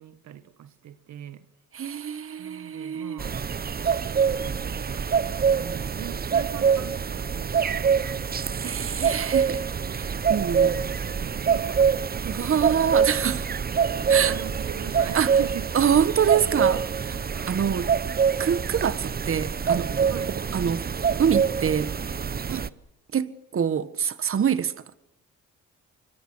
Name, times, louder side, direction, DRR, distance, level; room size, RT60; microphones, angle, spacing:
voice 1, 0.0-1.5 2.4-3.4 4.0-5.1 5.6-8.7 10.1-12.4 14.1-16.1 17.3-17.6 20.1-20.3 22.5-22.8, right 10 dB, 65° right, 1.5 m, -42 dB
voice 2, 1.7-3.2 3.8-4.0 8.5-9.6 9.9-10.8 12.2-13.5 14.1-14.3 15.1-15.3 15.7-17.2 17.5-17.9 18.4-20.1 20.5-20.9 21.2-21.9 22.5-22.6 23.1-24.7, right 8 dB, 45° right, 1.6 m, -25 dB
sound 1, 3.2-22.7, right 6 dB, 30° right, 1.0 m, -25 dB
25.5 x 24.5 x 6.4 m
cardioid pair, 90°, 30 cm